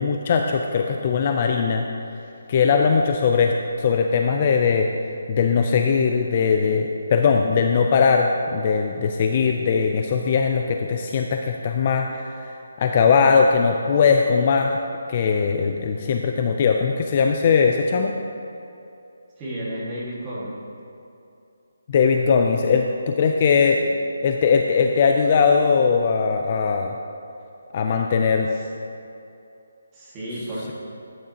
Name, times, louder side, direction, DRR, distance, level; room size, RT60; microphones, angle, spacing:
voice 1, 0.0-1.8 2.5-4.9 5.3-12.5 12.8-14.8 15.1-18.1 21.9-23.8 24.2-26.9 27.7-28.5, left 5 dB, 30° left, 3 dB, 0.4 m, -20 dB
voice 2, 19.4-20.5 23.7-23.9 28.5-28.6 29.9-30.7, equal, 15° right, -8 dB, 1.8 m, -32 dB
12.0 x 9.3 x 2.8 m, 2.7 s
hypercardioid pair, 175°, 0 cm